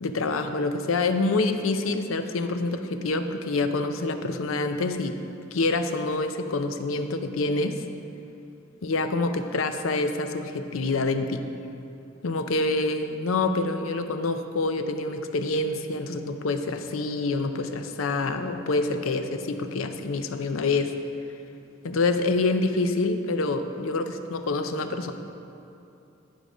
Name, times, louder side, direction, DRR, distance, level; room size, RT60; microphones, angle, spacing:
voice 1, 0.0-5.2 5.5-7.7 8.8-11.4 12.2-20.9 21.8-25.1, left 3 dB, 85° left, 8 dB, 0.5 m, -26 dB
10.0 x 5.2 x 5.0 m, 2.8 s
head